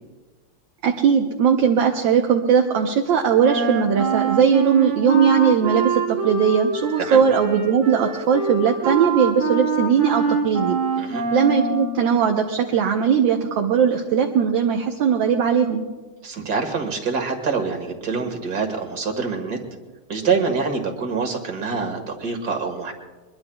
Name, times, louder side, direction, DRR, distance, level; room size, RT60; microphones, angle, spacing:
voice 1, 0.8-10.8 11.3-15.8, right 7 dB, 65° right, 3 dB, 1.5 m, -19 dB
Wind instrument woodwind instrument, 3.4-12.0, right 4 dB, 90° right, 2.9 m, -25 dB
voice 2, 16.2-19.6 20.1-22.9, right 5 dB, 50° right, 3 dB, 2.2 m, -25 dB
22.5 x 22.0 x 2.3 m, 1.3 s
omnidirectional pair, 2.4 m